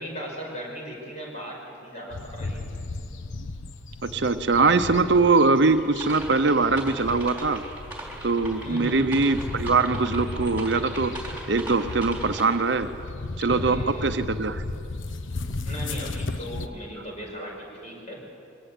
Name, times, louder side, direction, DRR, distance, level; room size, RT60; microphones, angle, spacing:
voice 1, 0.0-2.6 8.6-9.1 13.5-14.1 15.6-18.2, equal, 35° left, -1 dB, 5.8 m, -37 dB
sound 1, 2.1-16.7, left 2 dB, 75° left, 0.9 m, -35 dB
voice 2, 4.0-7.6 8.2-11.2 11.5-12.9 13.4-14.6, right 3 dB, 60° right, 9 dB, 0.8 m, -22 dB
sound 2, 6.0-12.4, right 1 dB, 10° right, 4.0 m, -40 dB
23.5 x 18.0 x 8.4 m, 2.7 s
head